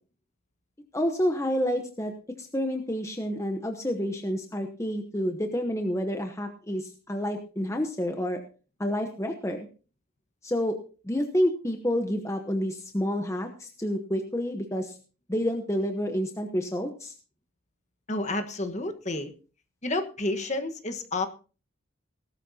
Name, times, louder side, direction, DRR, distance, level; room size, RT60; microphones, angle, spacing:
voice 1, 0.9-2.1 2.4-8.4 8.8-9.7 10.4-10.8 11.0-15.0 15.3-17.1, equal, 15° left, 5 dB, 0.9 m, -29 dB
voice 2, 18.1-19.3 19.8-21.3, left 2 dB, 35° left, 7 dB, 1.3 m, -30 dB
18.0 x 12.5 x 2.8 m, 0.36 s
head